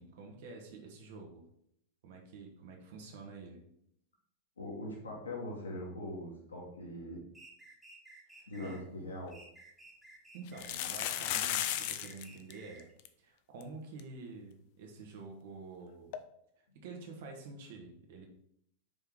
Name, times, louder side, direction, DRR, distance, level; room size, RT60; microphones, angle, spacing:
voice 1, 0.0-1.5 2.0-3.6 8.3-8.8 10.3-12.9 13.2-16.2 16.6-18.3, right 3 dB, 55° right, 2 dB, 1.4 m, -48 dB
voice 2, 4.6-7.2 8.5-9.4, left 1 dB, 70° left, -2 dB, 1.6 m, -41 dB
sound 1, 7.3-8.8 9.3-10.9 11.3-12.9, right 2 dB, 5° right, 1.3 m, -55 dB
sound 2, 8.9-9.0 9.3-9.4 10.5-12.2 12.5-12.6 12.8-13.1 13.6-13.7 14.0-14.1 16.1-16.2, left 11 dB, 50° left, 0.5 m, -35 dB
5.2 x 4.7 x 3.8 m, 0.70 s
figure-of-eight pair, 90°, 0 cm